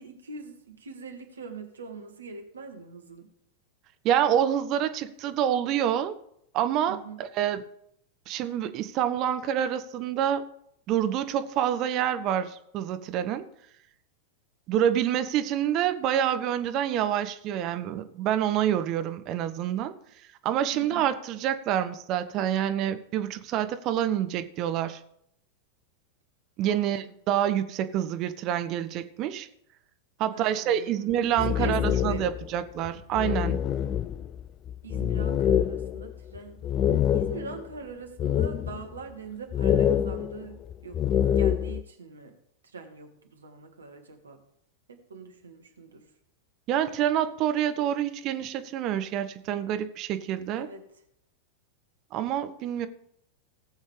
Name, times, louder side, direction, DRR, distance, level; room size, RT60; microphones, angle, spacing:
voice 1, 0.0-3.3 6.9-7.2 20.7-21.1 26.7-26.9 30.3-32.3 34.8-36.6 37.1-42.3 42.7-44.4 44.9-46.0 50.5-50.8, right 4 dB, 70° right, 4 dB, 1.7 m, -42 dB
voice 2, 4.0-6.1 6.5-7.6 8.3-10.4 10.9-13.4 14.7-19.9 20.4-25.0 26.6-29.5 30.2-33.6 46.7-50.7 52.1-52.9, right 10 dB, 40° right, 10 dB, 0.8 m, -27 dB
sound 1, 31.1-32.5 32.8-32.9 33.2-37.7 38.2-39.0 39.5-41.8, left 9 dB, 30° left, 0.4 m, -26 dB
18.0 x 7.4 x 3.4 m, 0.73 s
figure-of-eight pair, 90°, 0 cm